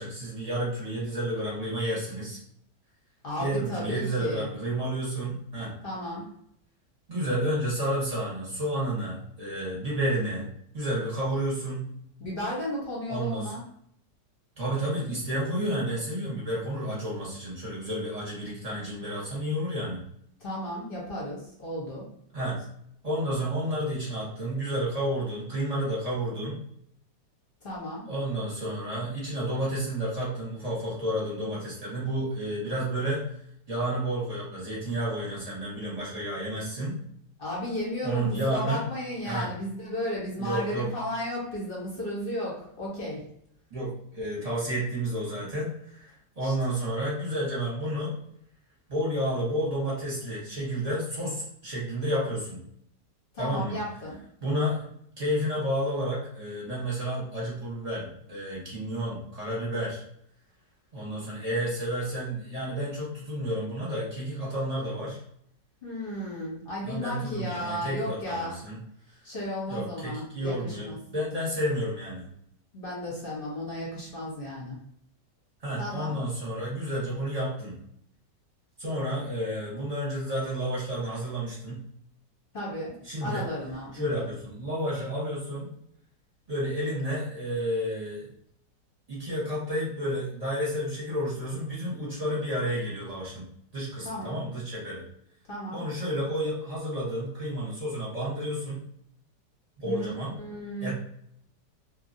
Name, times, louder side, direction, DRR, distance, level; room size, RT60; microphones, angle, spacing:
voice 1, 0.0-2.4 3.4-5.7 7.1-10.5 10.7-11.9 13.1-13.5 14.6-20.0 22.3-22.6 23.0-26.6 28.1-33.2 33.7-37.0 38.0-38.8 39.2-39.5 40.4-40.9 43.7-48.1 48.9-52.6 53.4-53.8 54.4-54.8 55.2-60.0 60.9-65.2 66.8-68.8 69.7-72.3 75.6-77.8 78.8-81.8 83.0-83.4 83.9-85.7 86.5-88.3 89.1-95.0 95.7-98.8 99.8-100.4 100.8-100.9, right 1 dB, 25° right, -7 dB, 1.0 m, -31 dB
voice 2, 3.2-4.5 5.8-6.3 12.2-13.6 20.4-22.1 27.6-28.0 37.4-43.3 46.4-46.5 53.3-54.2 65.8-68.6 69.2-71.0 72.7-74.8 75.8-76.1 82.5-84.3 94.0-94.4 95.5-95.8 99.8-100.1 100.4-100.9, left 1 dB, 40° left, -5 dB, 0.9 m, -34 dB
2.9 x 2.6 x 2.6 m, 0.70 s
omnidirectional pair, 1.9 m